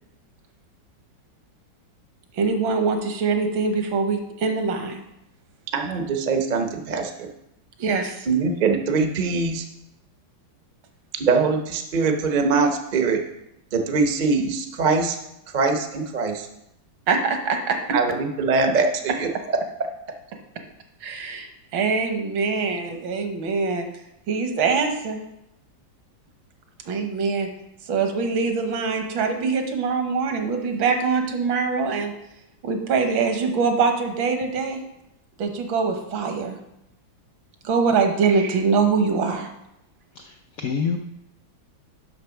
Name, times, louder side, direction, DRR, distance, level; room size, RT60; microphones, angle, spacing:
voice 1, 2.3-5.0 7.8-8.3 17.1-17.8 21.0-23.9 24.3-25.2 26.9-27.5 27.9-32.1 32.6-34.8 35.4-36.6 37.6-39.5, right 5 dB, 80° right, 1.8 m, -23 dB
voice 2, 5.7-7.3 8.3-9.6 11.1-13.2 13.7-15.2 15.5-16.5 17.9-19.6, right 4 dB, 55° right, 0.5 m, -22 dB
voice 3, 40.2-41.0, left 6 dB, 75° left, 0.8 m, -27 dB
6.6 x 5.7 x 5.8 m
omnidirectional pair, 2.1 m